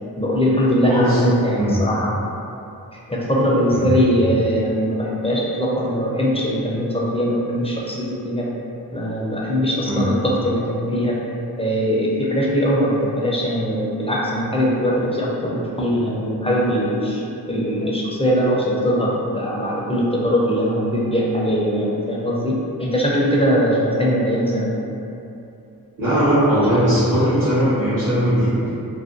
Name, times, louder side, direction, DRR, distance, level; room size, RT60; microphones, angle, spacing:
voice 1, 0.2-2.2 3.1-8.5 8.9-11.2 11.6-17.2 17.5-24.7, equal, 15° left, -5 dB, 0.4 m, -21 dB
voice 2, 0.9-1.2 1.5-1.8 3.7-3.9 9.8-10.0 26.0-28.5, equal, 60° right, -14 dB, 0.9 m, -19 dB
2.5 x 2.2 x 2.5 m, 2.7 s
wide cardioid pair, 50°, 38 cm